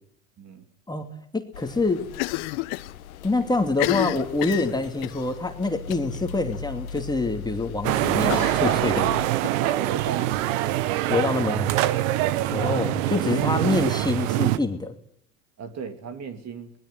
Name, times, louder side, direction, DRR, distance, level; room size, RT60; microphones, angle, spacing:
voice 1, 0.9-2.1 3.2-9.2 11.1-11.7 12.5-14.9, left 3 dB, 10° left, 5 dB, 2.6 m, -26 dB
sound 1, 1.5-9.3, left 6 dB, 85° left, 1.6 m, -39 dB
Cough, 2.1-2.9 3.2-3.3 3.7-5.2 5.9-6.2 6.5-6.6 7.0-7.1 8.3-9.5, left 21 dB, 60° left, 1.3 m, -30 dB
sound 2, 7.8-14.6, right 15 dB, 70° right, 1.3 m, -24 dB
voice 2, 9.6-10.6 11.5-11.6 12.5-12.8 13.5-13.6 15.6-16.7, right 6 dB, 40° right, 8 dB, 2.9 m, -36 dB
24.0 x 20.5 x 7.9 m, 0.72 s
hypercardioid pair, 85°, 41 cm